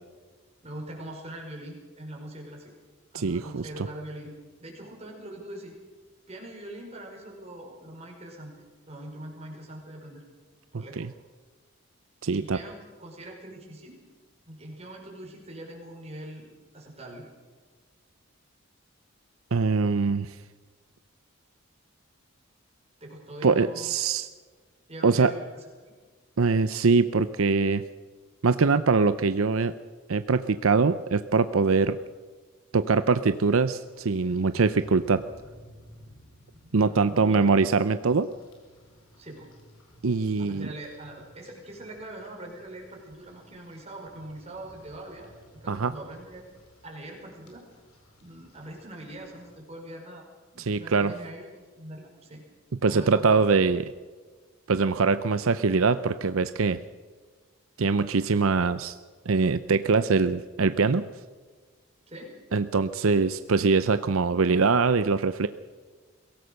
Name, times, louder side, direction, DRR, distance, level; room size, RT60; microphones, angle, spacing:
voice 1, 0.6-2.7 3.1-5.7 6.3-10.2 10.7-11.1 12.3-14.0 14.5-17.3 23.0-24.0 24.9-26.0 36.6-37.5 39.2-39.5 40.4-46.4 46.8-47.6 48.2-50.3 50.5-52.4 52.8-53.5 62.1-62.4, right 1 dB, 30° right, 0 dB, 5.3 m, -42 dB
voice 2, 3.1-3.9 10.7-11.1 12.2-12.6 19.5-20.4 23.4-24.3 25.0-25.3 26.4-27.8 28.4-29.7 30.1-32.0 32.7-35.2 36.7-38.3 40.0-40.7 45.7-45.9 50.6-51.1 52.8-53.8 54.7-56.8 57.8-59.0 59.3-61.0 62.5-65.5, right 4 dB, 75° right, 12 dB, 0.6 m, -23 dB
Rain, 33.2-49.6, equal, 85° left, 5.1 m, -55 dB
23.0 x 17.5 x 6.6 m, 1.5 s
head